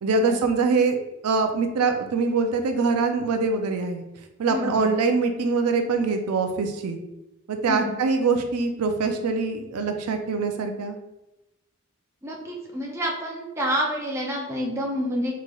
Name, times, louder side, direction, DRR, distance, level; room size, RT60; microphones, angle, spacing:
voice 1, 0.0-4.0 4.4-7.0 7.5-11.0, right 4 dB, 85° right, 5 dB, 0.4 m, -24 dB
voice 2, 4.5-4.9 7.7-8.0 12.2-15.4, equal, 10° right, -2 dB, 0.6 m, -28 dB
3.7 x 3.1 x 2.3 m, 0.95 s
head